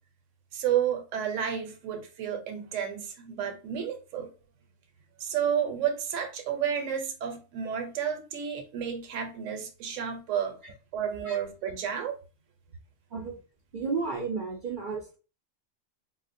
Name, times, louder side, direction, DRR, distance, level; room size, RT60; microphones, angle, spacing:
voice 1, 0.5-4.3 5.2-10.6 10.9-12.2, right 8 dB, 75° right, 1.0 m, -31 dB
voice 2, 13.7-15.2, right 4 dB, 60° right, 0.5 m, -33 dB
3.7 x 2.1 x 2.5 m
omnidirectional pair, 1.3 m